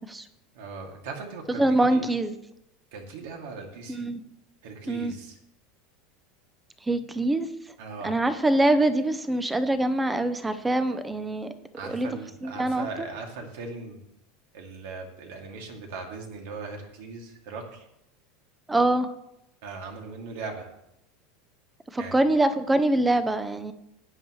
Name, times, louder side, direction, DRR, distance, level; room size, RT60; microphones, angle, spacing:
voice 1, 0.5-2.1 2.9-4.1 4.6-5.4 7.8-8.2 11.8-14.0 14.5-17.8 19.6-20.7 21.9-22.2, right 4 dB, 65° right, 2 dB, 2.4 m, -39 dB
voice 2, 1.6-2.4 3.9-4.2 4.9-5.1 6.9-7.5 8.0-11.5 11.8-12.1 12.4-12.9 18.7-19.1 21.9-23.7, right 1 dB, 5° right, 11 dB, 0.6 m, -24 dB
16.0 x 9.8 x 3.1 m, 0.82 s
supercardioid pair, 170°, 0 cm